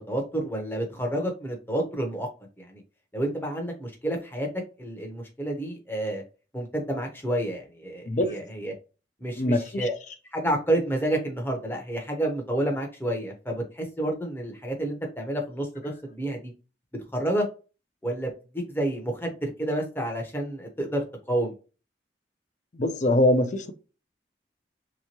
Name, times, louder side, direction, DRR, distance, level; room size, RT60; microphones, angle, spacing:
voice 1, 0.0-2.3 2.6-2.8 3.1-4.5 4.8-6.2 6.5-8.7 9.2-9.9 10.3-16.5 17.1-17.4 18.0-21.5, right 1 dB, 10° left, 0.8 m, -29 dB
voice 2, 9.4-9.9 22.8-23.7, left 1 dB, 40° left, 0.5 m, -23 dB
3.3 x 3.0 x 2.9 m
head